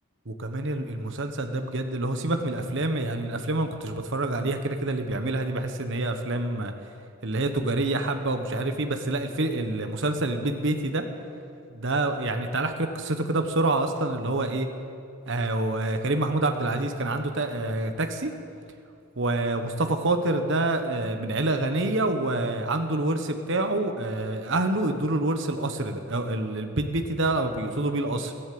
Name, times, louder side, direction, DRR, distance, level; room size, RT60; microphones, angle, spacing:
voice 1, 0.2-6.7 7.2-11.1 11.7-14.7 15.3-18.3 19.2-28.3, right 2 dB, 55° right, 6 dB, 1.2 m, -27 dB
14.0 x 11.5 x 7.8 m, 2.4 s
head